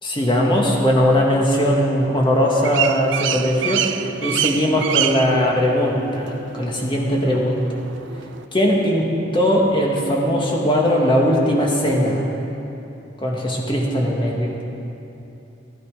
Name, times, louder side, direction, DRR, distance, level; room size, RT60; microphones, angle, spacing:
voice 1, 0.0-3.8 4.2-7.6 8.5-9.1 9.3-12.2 13.2-14.5, equal, 25° left, -1 dB, 1.8 m, -19 dB
sound 1, 2.2-8.4, right 10 dB, 70° right, 0.5 m, -27 dB
14.0 x 11.0 x 5.0 m, 3.0 s
head